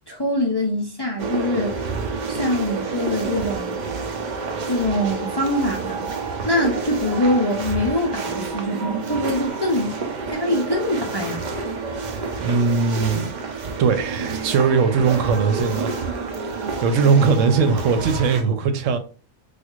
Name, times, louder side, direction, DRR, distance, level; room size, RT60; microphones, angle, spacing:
voice 1, 0.1-1.9 2.3-3.8 4.7-6.1 6.5-11.4, left 1 dB, 35° left, 0.4 m, -24 dB
sound 1, 1.2-18.4, right 4 dB, 55° right, 0.5 m, -29 dB
voice 2, 12.4-13.3 13.8-16.0 16.4-19.0, right 5 dB, 90° right, 1.0 m, -20 dB
4.5 x 2.4 x 2.4 m
omnidirectional pair, 1.3 m